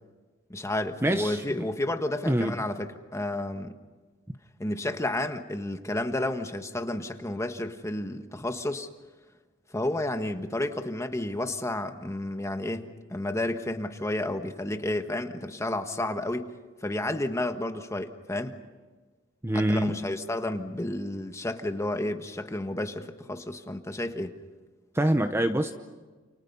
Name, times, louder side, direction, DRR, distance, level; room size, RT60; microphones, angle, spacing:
voice 1, 0.5-3.8 4.6-8.9 9.7-16.5 16.8-18.6 19.5-24.4, left 1 dB, 15° left, 7 dB, 1.4 m, -31 dB
voice 2, 1.0-1.6 2.3-2.5 19.4-20.0 24.9-25.7, right 1 dB, 15° right, 8 dB, 0.8 m, -25 dB
29.0 x 29.0 x 5.5 m, 1.3 s
head